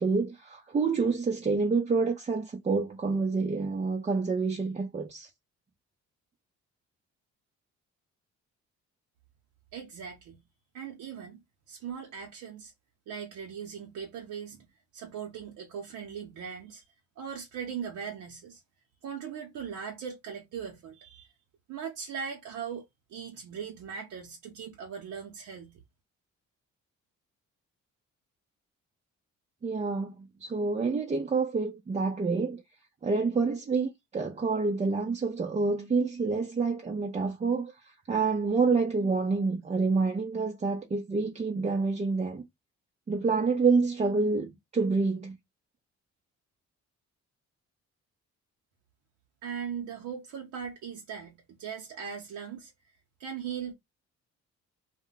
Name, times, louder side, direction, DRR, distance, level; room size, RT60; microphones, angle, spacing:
voice 1, 0.0-5.3 29.6-32.6 33.0-42.4 43.1-45.4, right 4 dB, 25° right, 0.5 m, -28 dB
voice 2, 9.7-10.4 10.7-11.4 11.7-12.7 13.1-14.7 14.9-16.8 17.2-18.6 19.0-21.3 21.7-22.8 23.1-25.8 49.4-52.7 53.2-53.7, right 7 dB, 80° right, 0.7 m, -39 dB
2.1 x 2.1 x 3.8 m
cardioid pair, 90°, 30 cm